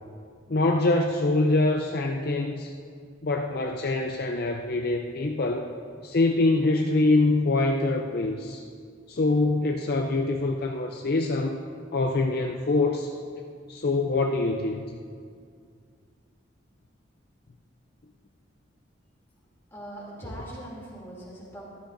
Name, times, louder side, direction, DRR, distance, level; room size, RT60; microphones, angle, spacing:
voice 1, 0.5-2.7 3.2-5.7 6.0-8.6 9.1-11.6 11.9-13.1 13.7-14.8, left 2 dB, 50° left, 2 dB, 0.5 m, -24 dB
voice 2, 19.7-21.6, right 1 dB, 15° left, -6 dB, 2.9 m, -40 dB
14.0 x 12.5 x 2.6 m, 2.1 s
head